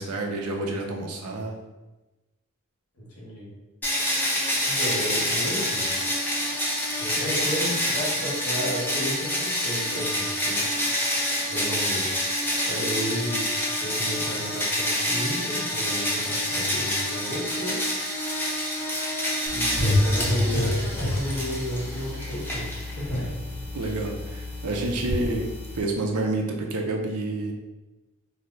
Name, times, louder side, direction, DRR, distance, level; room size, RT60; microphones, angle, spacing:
voice 1, 0.0-1.6 23.7-27.5, right 2 dB, 90° right, 2 dB, 0.6 m, -29 dB
voice 2, 3.0-3.5 4.6-5.9 7.0-10.6 11.5-12.2 12.7-13.5 13.8-17.8 19.5-23.3 23.8-24.0, equal, 90° left, -5 dB, 1.3 m, -33 dB
sound 1, 3.8-23.2, left 1 dB, 10° left, 0.6 m, -27 dB
sound 2, 19.5-25.8, left 1 dB, 25° left, 1.2 m, -29 dB
3.2 x 2.0 x 3.9 m, 1.1 s
head